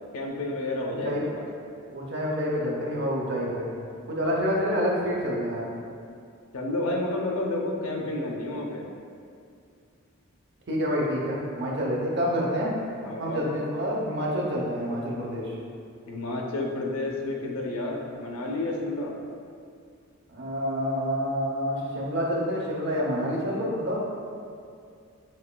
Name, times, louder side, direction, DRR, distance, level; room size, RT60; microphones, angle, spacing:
voice 1, 0.1-1.4 6.5-8.9 13.0-13.4 16.1-19.1, left 2 dB, 85° left, 0 dB, 0.6 m, -30 dB
voice 2, 0.8-1.4 1.9-3.7 4.1-5.6 10.7-12.7 13.2-15.6 20.3-24.0, equal, 55° right, -3 dB, 0.7 m, -28 dB
6.3 x 3.0 x 2.2 m, 2.4 s
head